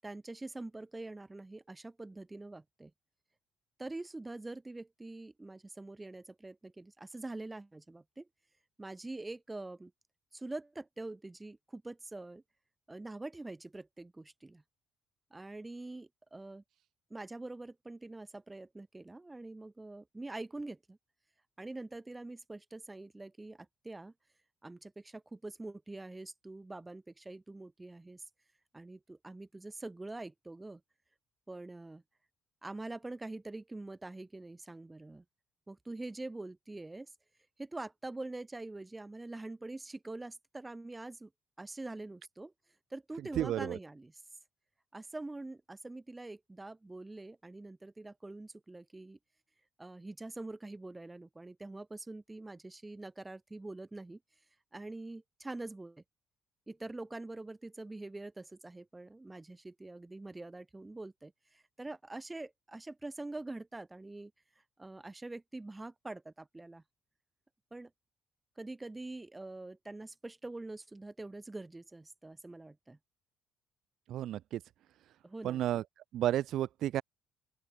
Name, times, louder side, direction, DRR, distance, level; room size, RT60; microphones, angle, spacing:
voice 1, 0.0-2.9 3.8-8.3 8.8-9.9 10.3-12.4 12.9-14.6 15.3-16.6 17.1-21.0 21.6-24.1 24.6-28.2 28.7-30.8 31.5-32.0 32.6-35.2 35.7-37.1 37.6-41.3 41.6-42.5 42.9-44.1 44.9-49.2 49.8-54.2 54.7-56.0 56.7-64.3 64.8-66.8 67.7-67.9 68.6-73.0 75.2-75.6, right 2 dB, 15° right, 6.1 m, -45 dB
voice 2, 43.4-43.8 74.1-74.6 75.4-75.8 76.1-77.0, right 12 dB, 65° right, 0.8 m, -32 dB
open air
cardioid pair, 115°, 0 cm